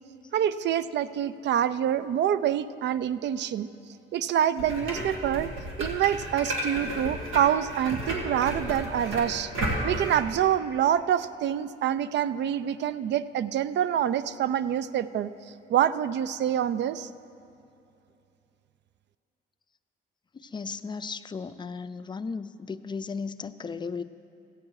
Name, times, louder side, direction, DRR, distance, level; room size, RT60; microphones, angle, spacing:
voice 1, 0.3-3.7 4.1-5.5 5.8-9.5 9.8-15.3 15.7-17.1, right 10 dB, 60° right, 16 dB, 0.4 m, -26 dB
sound 1, 4.6-10.2, right 1 dB, 80° right, 1.9 m, -32 dB
voice 2, 20.3-24.0, left 5 dB, 25° left, 12 dB, 0.4 m, -35 dB
15.0 x 8.6 x 4.7 m, 2.7 s
cardioid pair, 90°, 20 cm